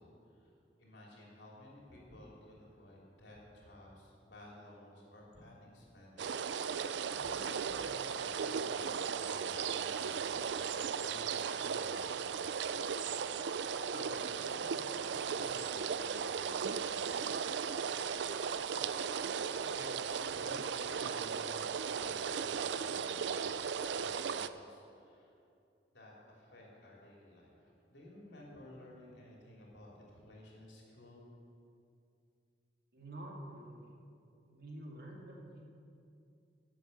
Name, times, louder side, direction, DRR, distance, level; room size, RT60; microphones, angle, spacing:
voice 1, 0.0-8.9 9.2-10.5 10.7-12.5 13.9-17.8 19.7-25.3 25.9-31.2, left 1 dB, 80° left, -3 dB, 3.1 m, -55 dB
sound 1, 6.2-24.5, right 6 dB, 75° right, 0.4 m, -36 dB
voice 2, 32.9-33.9 34.5-35.6, right 1 dB, 60° right, -1 dB, 2.2 m, -48 dB
11.5 x 7.5 x 7.9 m, 2.5 s
head